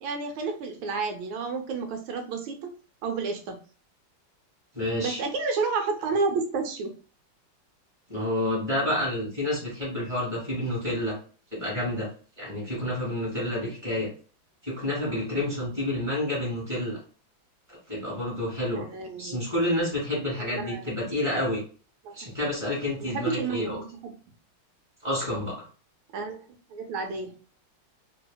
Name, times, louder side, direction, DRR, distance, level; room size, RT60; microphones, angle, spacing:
voice 1, 0.0-2.7 3.0-3.6 5.0-6.9 18.7-19.4 20.4-20.8 22.0-22.3 23.0-24.1 26.1-26.4 26.7-27.3, right 4 dB, 90° right, 5 dB, 1.5 m, -31 dB
voice 2, 4.7-5.2 8.1-11.1 11.5-12.1 12.4-14.1 14.6-17.0 17.7-18.9 19.2-21.6 22.1-23.8 25.0-25.7, left 1 dB, 15° right, -4 dB, 1.5 m, -29 dB
3.2 x 2.7 x 2.2 m, 0.38 s
omnidirectional pair, 2.2 m